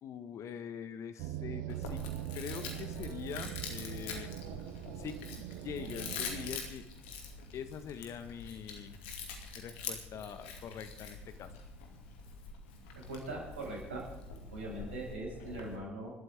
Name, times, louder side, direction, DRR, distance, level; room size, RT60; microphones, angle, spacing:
voice 1, 0.0-2.0 2.3-4.3 5.0-6.8 7.5-9.0 9.5-11.5, left 7 dB, 50° left, 10 dB, 1.5 m, -43 dB
sound 1, 1.2-6.6, right 15 dB, 65° right, 0.7 m, -42 dB
Chewing mastication, 1.7-15.8, left 5 dB, 70° left, 2.5 m, -45 dB
voice 2, 13.1-14.0 14.5-16.1, right 2 dB, 80° right, -3 dB, 6.0 m, -41 dB
27.0 x 12.5 x 3.7 m, 0.87 s
figure-of-eight pair, 55°, 6 cm